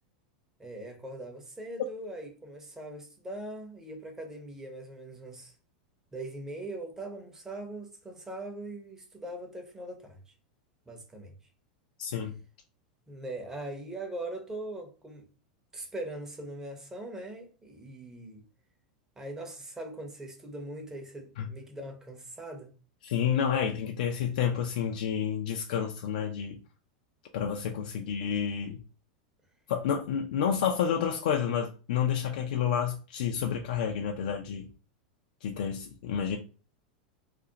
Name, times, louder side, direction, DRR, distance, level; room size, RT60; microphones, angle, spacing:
voice 1, 0.6-5.5 6.1-10.2 10.9-11.3 13.1-15.2 15.7-18.4 19.2-22.7, right 1 dB, 10° right, 0.6 m, -41 dB
voice 2, 12.0-12.3 21.4-21.5 23.0-26.6 27.3-28.8 29.7-34.7 35.4-36.4, left 8 dB, 75° left, 0.3 m, -29 dB
2.4 x 2.0 x 2.7 m
hypercardioid pair, 120°, 4 cm